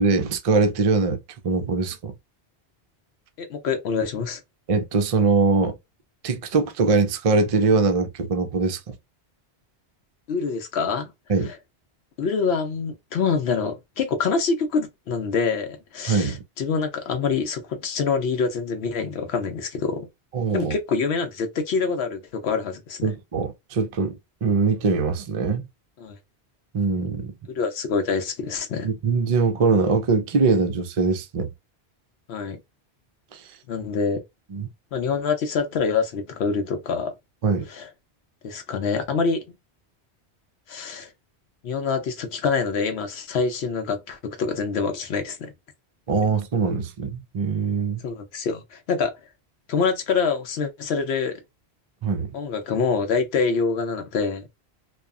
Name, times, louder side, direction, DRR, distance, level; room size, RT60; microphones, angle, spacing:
voice 1, 0.0-2.1 4.7-5.8 6.2-8.9 11.3-11.5 16.1-16.4 20.3-20.8 23.0-25.6 26.7-27.3 28.8-31.5 34.5-34.7 37.4-37.6 46.1-48.0 52.0-52.3, right 4 dB, 50° right, 0.4 m, -22 dB
voice 2, 3.4-4.4 10.3-11.1 11.4-11.6 12.2-20.1 20.5-23.1 26.0-26.2 27.5-28.9 32.3-32.6 33.7-34.2 34.9-37.1 37.7-37.9 38.4-39.4 40.7-41.1 41.6-45.5 48.0-49.1 49.7-51.4 52.3-54.4, left 5 dB, 75° left, 0.8 m, -25 dB
2.8 x 2.2 x 2.3 m
omnidirectional pair, 1.1 m